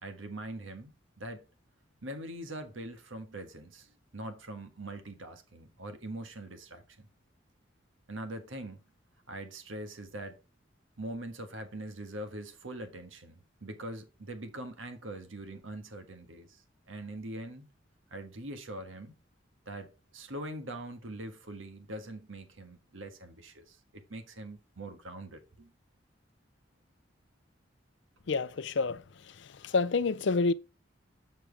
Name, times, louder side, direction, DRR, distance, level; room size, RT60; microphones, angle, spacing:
voice 1, 0.0-1.4 2.0-7.1 8.1-8.9 9.3-10.4 11.0-17.7 18.1-19.2 19.6-25.7, right 1 dB, 85° right, 1.5 m, -43 dB
voice 2, 28.3-29.0 29.4-30.5, left 4 dB, 70° left, 0.5 m, -28 dB
7.1 x 6.0 x 3.4 m
head